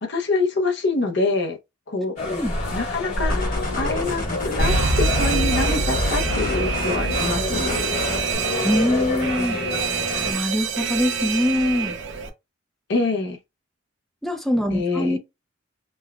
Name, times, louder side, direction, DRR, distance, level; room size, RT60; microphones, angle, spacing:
voice 1, 0.0-1.6 1.9-2.2 2.7-3.4 3.8-7.8 12.9-13.4 14.7-15.2, left 3 dB, 60° left, 0.7 m, -25 dB
sound 1, 2.2-10.3, left 2 dB, 85° left, 1.9 m, -28 dB
voice 2, 2.2-2.5 5.7-5.8 8.6-9.6 10.3-11.9 14.2-15.2, left 1 dB, ahead, 0.5 m, -23 dB
sound 2, 3.3-8.3, left 2 dB, 45° left, 1.0 m, -31 dB
Alarm, 4.6-12.3, right 4 dB, 65° right, 0.7 m, -25 dB
5.3 x 2.2 x 2.3 m
head